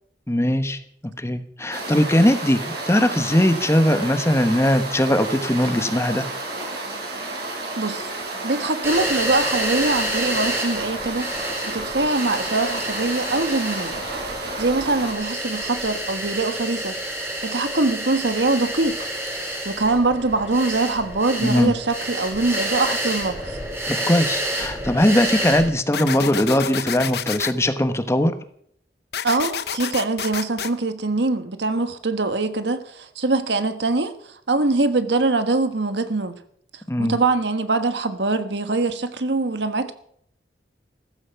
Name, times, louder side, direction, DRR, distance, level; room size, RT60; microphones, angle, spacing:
voice 1, 0.3-6.3 21.4-21.7 23.9-28.4 36.9-37.2, left 1 dB, 15° left, 1.1 m, -20 dB
sound 1, 1.7-15.1, right 2 dB, 60° right, 6.9 m, -31 dB
voice 2, 7.8-8.1 8.4-14.0 14.6-17.0 17.4-19.0 19.6-23.6 29.2-36.3 37.0-39.9, right 3 dB, 75° right, 1.4 m, -23 dB
sound 2, 8.8-25.7, right 1 dB, 15° right, 3.3 m, -29 dB
sound 3, 25.9-27.5 29.1-30.7, left 8 dB, 60° left, 0.8 m, -29 dB
15.5 x 14.0 x 5.8 m
head